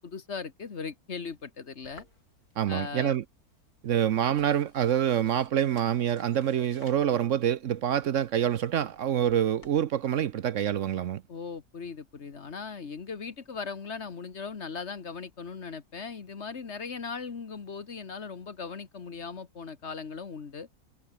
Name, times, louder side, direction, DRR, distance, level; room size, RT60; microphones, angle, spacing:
voice 1, 0.0-2.1 2.7-3.1 11.3-20.7, left 5 dB, 50° left, 1.7 m, -38 dB
sound 1, 1.8-9.8, left 2 dB, 90° left, 7.9 m, -59 dB
voice 2, 2.6-3.2 3.8-11.2, right 10 dB, 65° right, 1.0 m, -26 dB
omnidirectional pair, 1.5 m